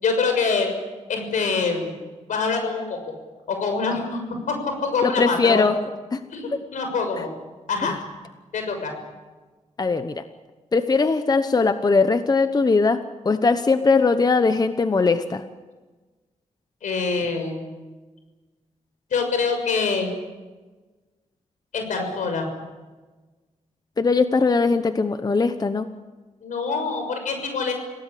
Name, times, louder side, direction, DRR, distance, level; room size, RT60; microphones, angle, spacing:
voice 1, 0.0-0.7 1.1-2.0 2.3-3.0 3.5-4.2 4.5-5.7 6.3-7.3 7.7-7.9 8.5-8.9 16.8-17.8 19.1-20.1 21.7-22.5 26.4-27.7, left 4 dB, 85° left, 5 dB, 6.4 m, -25 dB
voice 2, 5.0-5.8 6.1-6.2 7.1-7.2 7.8-8.0 9.8-10.2 10.7-13.0 13.2-15.4 24.0-25.9, left 4 dB, 30° left, 10 dB, 1.0 m, -20 dB
27.0 x 18.0 x 8.6 m, 1.3 s
wide cardioid pair, 105°, 13 cm